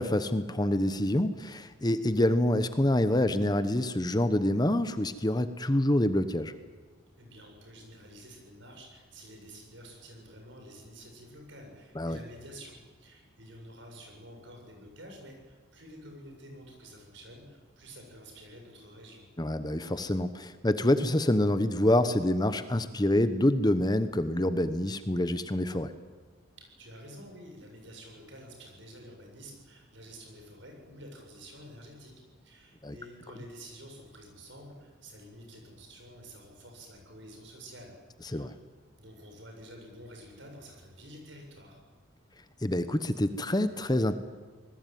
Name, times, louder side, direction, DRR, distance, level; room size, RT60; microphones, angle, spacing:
voice 1, 0.0-6.5 11.9-12.2 19.4-25.9 32.8-32.9 38.3-38.5 42.6-44.2, left 1 dB, 20° left, 11 dB, 1.0 m, -26 dB
voice 2, 7.2-19.2 26.6-32.1 32.4-37.9 38.2-38.6 39.0-41.8, equal, 65° right, 2 dB, 7.9 m, -49 dB
25.5 x 20.0 x 9.3 m, 1.4 s
head